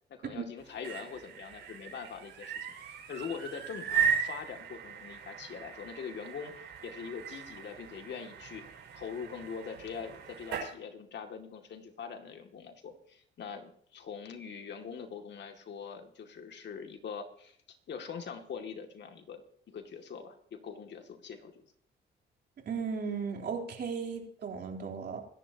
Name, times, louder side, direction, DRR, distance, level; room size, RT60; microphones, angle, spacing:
voice 1, 0.1-8.6 8.9-17.6 17.9-21.7, left 6 dB, 60° left, 5 dB, 2.4 m, -43 dB
sound 1, 0.6-10.7, right 7 dB, 85° right, 6.1 m, -37 dB
voice 2, 22.7-25.2, right 5 dB, 55° right, 1 dB, 3.9 m, -36 dB
25.5 x 11.0 x 2.9 m, 0.63 s
cardioid pair, 90°, 20 cm